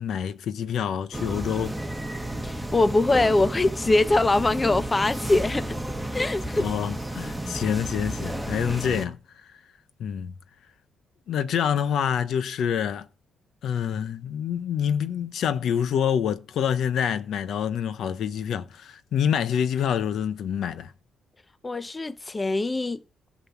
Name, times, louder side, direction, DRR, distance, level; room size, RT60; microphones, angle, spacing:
voice 1, 0.0-1.8 6.6-9.2 10.0-10.3 11.3-13.1 13.6-20.9, left 8 dB, 70° left, 0.9 m, -27 dB
sound 1, 1.1-9.1, right 1 dB, ahead, 1.7 m, -32 dB
voice 2, 2.4-5.8 6.1-6.7 21.6-23.0, left 2 dB, 20° left, 0.7 m, -23 dB
13.0 x 6.3 x 7.2 m
cardioid pair, 90°, 0 cm